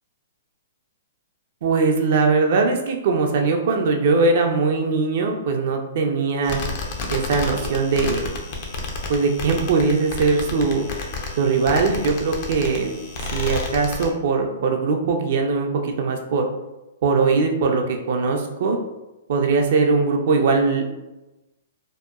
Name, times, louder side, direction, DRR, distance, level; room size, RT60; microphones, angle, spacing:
voice 1, 1.6-6.6 7.1-8.3 9.1-10.8 11.4-12.9 13.2-16.5 17.0-18.8 19.3-20.9, right 4 dB, 60° right, 3 dB, 0.4 m, -21 dB
sound 1, 6.4-14.1, left 3 dB, 50° left, 0.5 m, -31 dB
2.7 x 2.1 x 2.3 m, 1.0 s
hypercardioid pair, 130°, 0 cm